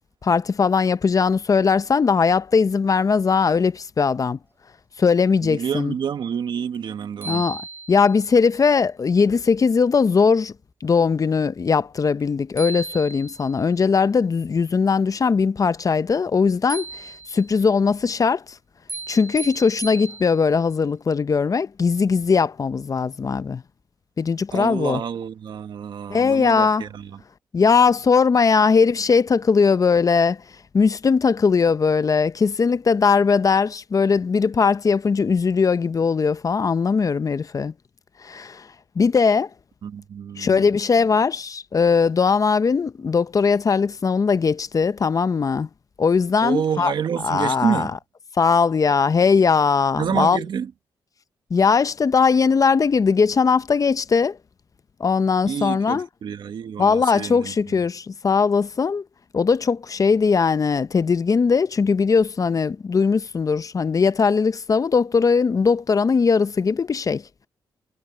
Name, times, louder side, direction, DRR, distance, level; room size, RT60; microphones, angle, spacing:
voice 1, 0.2-4.4 5.0-5.9 7.3-7.6 7.9-10.5 10.8-18.4 19.1-23.6 24.2-25.0 26.1-26.8 27.5-30.4 30.7-37.7 38.2-38.7 39.0-39.5 40.4-45.7 46.0-46.9 47.2-47.9 48.4-50.4 51.5-54.4 55.0-56.1 56.8-59.0 59.3-67.2, left 5 dB, 45° left, 0.8 m, -19 dB
voice 2, 5.4-7.5 24.5-27.2 39.8-40.7 46.4-48.0 50.0-50.7 55.5-57.5, right 8 dB, 70° right, 1.9 m, -28 dB
sound 1, 6.7-6.8 7.2-8.3 12.2-12.3 12.6-13.6 16.7-17.6 18.9-20.6, right 3 dB, 25° right, 3.4 m, -35 dB
cardioid pair, 65°, 8 cm